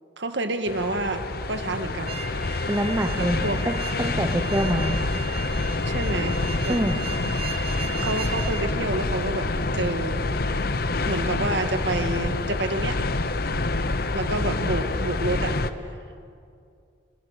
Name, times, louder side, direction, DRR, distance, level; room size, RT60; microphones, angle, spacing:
voice 1, 0.2-2.2 3.2-3.6 5.8-6.8 8.0-9.5 9.7-10.2 11.0-13.1 14.1-15.5, right 2 dB, 65° right, 7 dB, 1.8 m, -28 dB
sound 1, 0.7-15.7, left 2 dB, 50° left, 0.9 m, -27 dB
sound 2, 2.1-8.7, right 7 dB, 30° right, 2.0 m, -37 dB
voice 2, 2.7-3.4 3.6-5.0 6.7-7.0, right 1 dB, 15° right, 4 dB, 0.9 m, -25 dB
29.0 x 20.5 x 6.6 m, 2.4 s
head